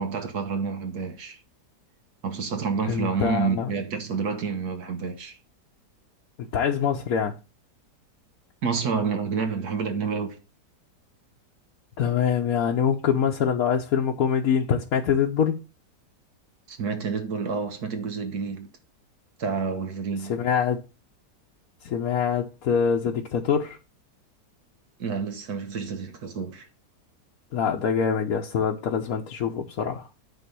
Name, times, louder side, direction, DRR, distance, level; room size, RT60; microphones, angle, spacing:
voice 1, 0.0-1.4 2.2-5.4 8.6-10.4 16.7-18.7 19.4-20.4 25.0-26.7, right 5 dB, 65° right, 1.6 m, -29 dB
voice 2, 2.9-3.7 6.4-7.3 12.0-15.6 20.2-20.8 21.8-23.8 27.5-30.1, left 7 dB, 60° left, 1.3 m, -24 dB
9.3 x 4.0 x 6.8 m
omnidirectional pair, 1.8 m